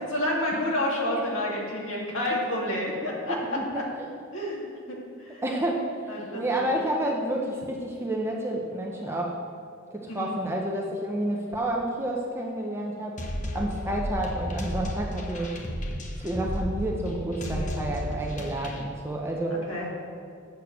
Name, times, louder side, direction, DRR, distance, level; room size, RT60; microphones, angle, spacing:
voice 1, 0.0-3.8 4.3-5.4 6.1-6.7 10.1-10.4 17.4-17.8 19.5-19.9, left 1 dB, 70° left, -3 dB, 2.3 m, -30 dB
voice 2, 3.3-3.9 5.4-5.9 6.3-9.3 9.9-13.2 13.5-15.6 16.2-19.6, right 1 dB, 10° right, -1 dB, 0.7 m, -30 dB
sound 1, 13.2-18.8, equal, 40° left, 1.1 m, -33 dB
8.2 x 6.5 x 6.5 m, 2.4 s
head